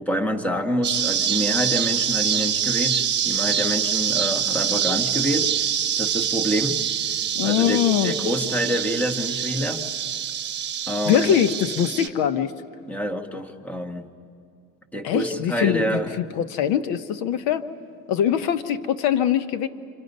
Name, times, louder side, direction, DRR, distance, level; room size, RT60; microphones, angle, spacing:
voice 1, 0.0-5.7 6.0-6.8 7.4-9.8 10.9-11.3 12.9-14.1 14.9-16.1, equal, 5° left, 6 dB, 1.4 m, -27 dB
sound 1, 0.8-12.1, right 9 dB, 30° right, 1.4 m, -25 dB
voice 2, 7.3-8.1 11.1-12.5 15.0-17.6 18.1-19.7, left 9 dB, 70° left, 11 dB, 1.1 m, -22 dB
29.0 x 27.5 x 5.4 m, 2.4 s
cardioid pair, 135°, 37 cm